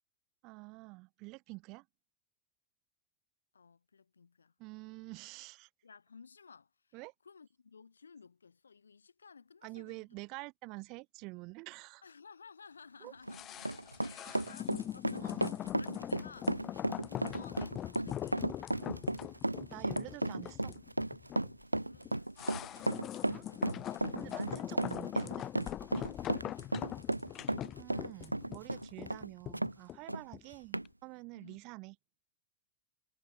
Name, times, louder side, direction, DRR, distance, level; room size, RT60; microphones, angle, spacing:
voice 1, 0.4-1.9 4.6-5.7 6.9-7.1 9.6-12.0 13.0-13.1 14.0-14.5 15.2-15.4 19.7-20.8 23.2-23.5 24.2-26.1 27.8-32.0, right 26 dB, 40° right, 3.6 m, -48 dB
voice 2, 3.5-4.5 5.8-7.0 7.2-10.1 12.0-18.8 21.8-22.7 23.0-23.5 30.2-30.3 31.3-31.6, left 5 dB, 75° left, 4.7 m, -57 dB
Run, 13.1-29.7 30.1-30.2 30.7-30.9, right 1 dB, 85° right, 0.3 m, -35 dB
sound 1, 13.3-30.5 30.8-30.9, left 12 dB, 30° left, 1.2 m, -42 dB
figure-of-eight pair, 90°, 0 cm